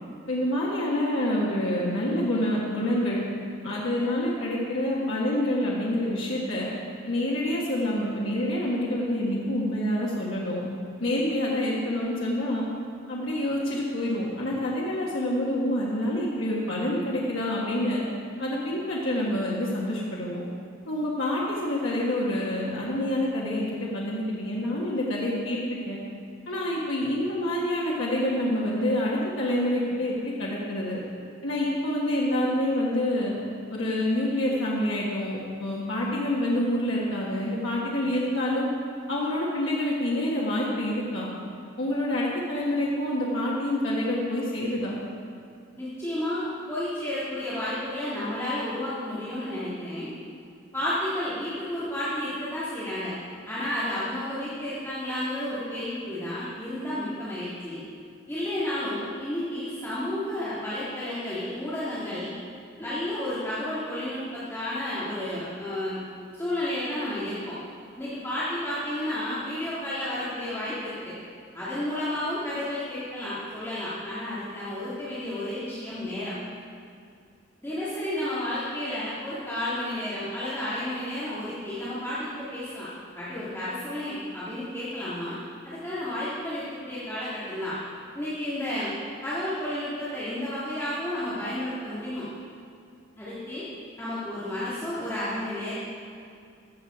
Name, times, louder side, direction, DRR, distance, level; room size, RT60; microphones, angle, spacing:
voice 1, 0.3-3.2 3.6-6.7 7.0-10.6 11.0-12.7 13.1-18.0 18.4-20.4 20.9-26.0 26.5-31.0 31.4-33.3 33.7-38.7 39.1-41.3 41.8-45.0, left 1 dB, 90° left, -5 dB, 1.5 m, -27 dB
voice 2, 45.8-50.1 50.7-53.1 53.5-57.8 58.3-62.3 62.8-66.0 66.3-67.6 68.0-71.1 71.5-76.3 77.6-82.9 83.1-85.4 85.6-87.8 88.1-88.9 89.2-92.2 93.2-93.7 94.0-95.7, left 1 dB, 15° left, -11 dB, 1.8 m, -31 dB
14.5 x 7.2 x 4.9 m, 2.3 s
head